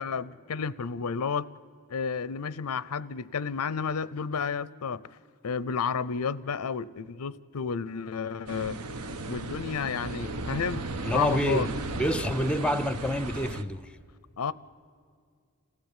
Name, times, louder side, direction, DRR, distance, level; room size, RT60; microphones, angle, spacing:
voice 1, 0.0-1.5 1.9-5.0 5.4-8.8 9.3-10.9 11.1-11.7 14.4-14.5, left 6 dB, 85° left, 0.6 m, -31 dB
sound 1, 8.5-13.6, right 2 dB, 85° right, 1.1 m, -35 dB
voice 2, 11.0-14.0, equal, 5° left, 0.5 m, -28 dB
28.5 x 15.5 x 9.0 m
head